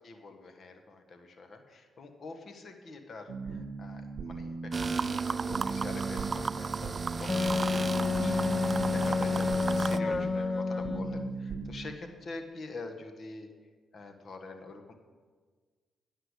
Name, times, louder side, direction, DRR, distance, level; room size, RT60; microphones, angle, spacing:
voice 1, 0.0-13.5 13.9-14.9, left 3 dB, 55° left, 6 dB, 1.4 m, -45 dB
sound 1, 3.3-12.0, right 4 dB, 65° right, 0.7 m, -39 dB
sound 2, 4.7-10.0, right 4 dB, 40° right, 0.4 m, -34 dB
Wind instrument woodwind instrument, 7.3-11.4, left 4 dB, 30° left, 0.3 m, -29 dB
9.9 x 6.8 x 8.1 m, 1.5 s
supercardioid pair, 65°, 0 cm